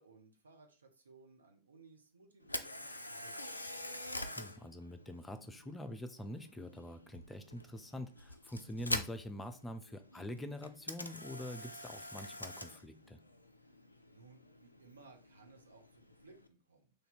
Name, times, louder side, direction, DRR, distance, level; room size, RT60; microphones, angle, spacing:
voice 1, 0.0-3.8 14.1-16.9, right 3 dB, 75° right, 4 dB, 0.7 m, -61 dB
Camera, 2.4-16.5, left 1 dB, 85° left, 0.3 m, -46 dB
voice 2, 4.4-13.2, left 1 dB, 10° left, 8 dB, 0.4 m, -45 dB
3.2 x 2.7 x 4.2 m, 0.36 s
figure-of-eight pair, 90°, 0 cm